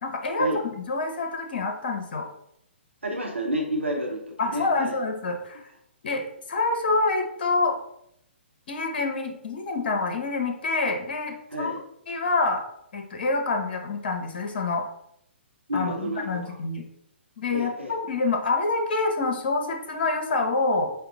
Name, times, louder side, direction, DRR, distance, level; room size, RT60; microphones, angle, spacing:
voice 1, 0.0-2.3 4.4-5.6 6.0-7.8 8.7-11.7 12.1-12.6 12.9-14.9 15.7-16.9 17.4-20.9, left 3 dB, 50° left, 4 dB, 0.9 m, -27 dB
voice 2, 3.0-5.0 11.5-11.8 15.7-16.6 17.5-18.0, equal, 80° right, 0 dB, 0.9 m, -30 dB
5.5 x 2.0 x 3.8 m, 0.73 s
figure-of-eight pair, 125°, 6 cm